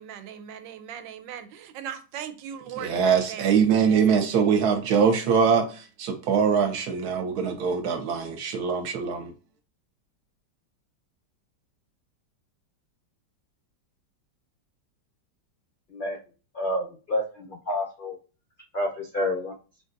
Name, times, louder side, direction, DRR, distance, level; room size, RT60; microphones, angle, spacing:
voice 1, 0.0-3.4 3.9-4.2, right 9 dB, 90° right, 1.3 m, -39 dB
voice 2, 2.7-9.3, right 6 dB, 65° right, 1.2 m, -23 dB
voice 3, 16.5-18.2 18.7-19.5, left 1 dB, 75° left, 0.4 m, -29 dB
5.6 x 2.6 x 2.5 m
omnidirectional pair, 1.9 m